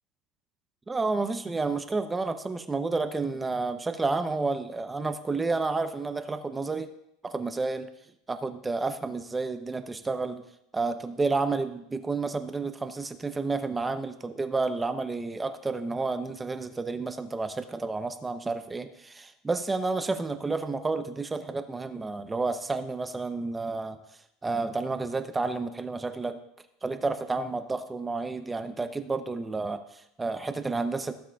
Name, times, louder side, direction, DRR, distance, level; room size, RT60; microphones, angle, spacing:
voice 1, 0.9-6.9 7.2-7.9 8.3-10.4 10.7-24.0 24.4-26.4 26.8-31.1, right 3 dB, 10° right, 9 dB, 0.6 m, -30 dB
16.5 x 7.4 x 2.3 m, 0.77 s
supercardioid pair, 155°, 0 cm